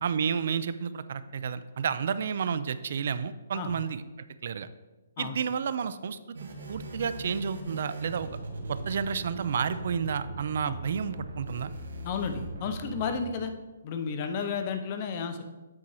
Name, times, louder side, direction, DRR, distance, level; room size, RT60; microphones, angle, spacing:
voice 1, 0.0-4.0 4.4-4.7 5.2-6.2 6.7-8.3 8.7-11.7, right 6 dB, 45° right, 14 dB, 0.3 m, -31 dB
sound 1, 6.3-13.2, right 1 dB, 85° right, 1.5 m, -40 dB
voice 2, 12.0-13.5 13.8-15.4, left 5 dB, 25° left, 7 dB, 0.5 m, -32 dB
8.4 x 4.2 x 4.8 m, 1.2 s
hypercardioid pair, 180°, 0 cm